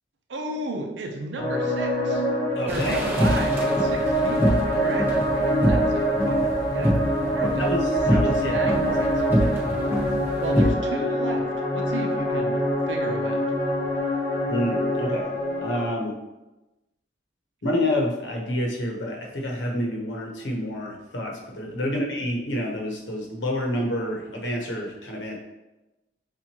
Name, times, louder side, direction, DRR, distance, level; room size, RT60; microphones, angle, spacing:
voice 1, 0.3-2.2 2.7-7.0 7.3-7.7 8.4-9.2 10.4-11.5 11.7-13.5 21.8-21.9, right 2 dB, 75° right, 2 dB, 0.7 m, -34 dB
sound 1, 1.4-15.9, equal, 10° left, 1.0 m, -25 dB
voice 2, 2.5-3.0 7.6-8.6 14.5-15.3 15.6-16.2 17.6-25.4, left 1 dB, 75° left, 0 dB, 1.0 m, -28 dB
sound 2, 2.7-10.7, equal, 10° right, 0.7 m, -26 dB
7.2 x 2.5 x 2.9 m, 1.0 s
head